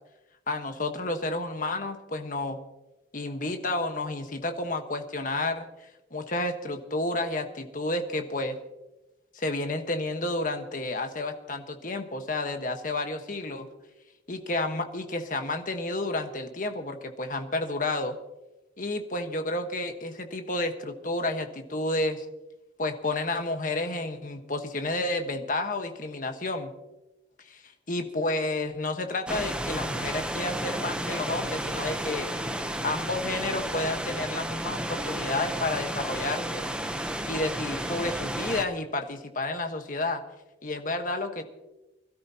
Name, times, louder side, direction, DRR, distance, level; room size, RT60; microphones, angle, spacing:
voice 1, 0.5-2.6 3.1-5.7 6.1-8.6 9.3-13.7 14.3-18.2 18.8-22.2 22.8-26.7 27.4-32.3 32.8-36.7 37.3-40.2 40.6-41.4, left 2 dB, 45° left, 6 dB, 1.3 m, -31 dB
sound 1, 29.3-38.6, right 1 dB, 5° right, 0.8 m, -32 dB
24.5 x 13.0 x 2.9 m, 1.0 s
head